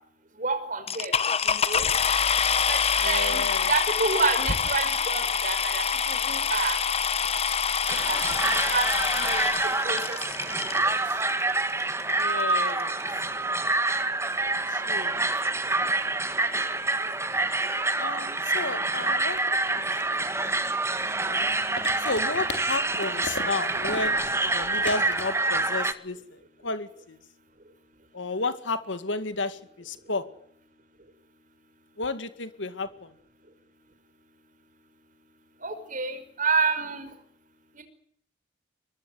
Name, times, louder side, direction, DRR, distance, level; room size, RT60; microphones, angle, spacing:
voice 1, 0.4-1.1 1.4-1.9 2.7-6.8 8.1-8.2 8.7-8.9 9.1-9.4 9.8-10.2 10.9-11.0 35.6-37.1, right 4 dB, 45° right, 8 dB, 5.6 m, -29 dB
sound 1, 0.9-10.8 11.6-11.7 12.2-12.3 12.5-12.8, left 6 dB, 35° left, 1.0 m, -26 dB
voice 2, 3.0-3.7 12.1-13.0 14.7-15.2 18.0-19.4 19.7-19.8 20.3-20.5 21.2-21.5 22.0-27.2 28.1-30.3 32.0-33.1, left 3 dB, 80° left, 11 dB, 2.2 m, -32 dB
sound 2, 7.9-25.9, right 2 dB, 15° right, 1.7 m, -27 dB
sound 3, 17.4-17.5 17.7-25.9, left 3 dB, 60° left, 4.4 m, -39 dB
23.5 x 21.0 x 9.5 m, 0.68 s
head